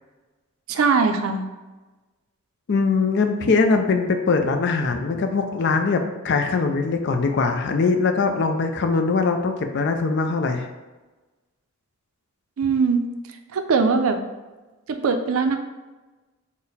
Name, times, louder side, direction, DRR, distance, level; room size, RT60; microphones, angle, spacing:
voice 1, 0.7-1.4 12.6-13.0 13.5-14.2 14.9-15.6, right 5 dB, 75° right, 6 dB, 0.4 m, -20 dB
voice 2, 2.7-10.7, left 4 dB, 55° left, 5 dB, 0.4 m, -21 dB
3.9 x 2.1 x 4.0 m, 1.2 s
head